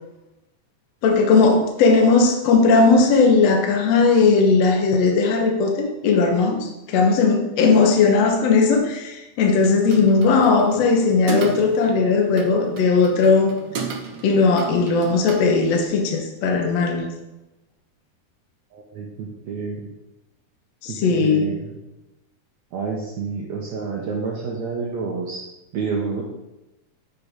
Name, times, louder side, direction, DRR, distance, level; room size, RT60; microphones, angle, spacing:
voice 1, 1.0-13.5 14.2-17.1 20.8-21.5, left 4 dB, 65° left, 1 dB, 1.7 m, -17 dB
sound 1, 9.6-15.8, right 6 dB, 90° right, 1.3 m, -35 dB
voice 2, 18.7-19.9 20.9-21.8 22.7-25.5 25.7-26.2, right 5 dB, 75° right, -2 dB, 1.7 m, -29 dB
8.2 x 4.5 x 5.1 m, 0.97 s
omnidirectional pair, 4.2 m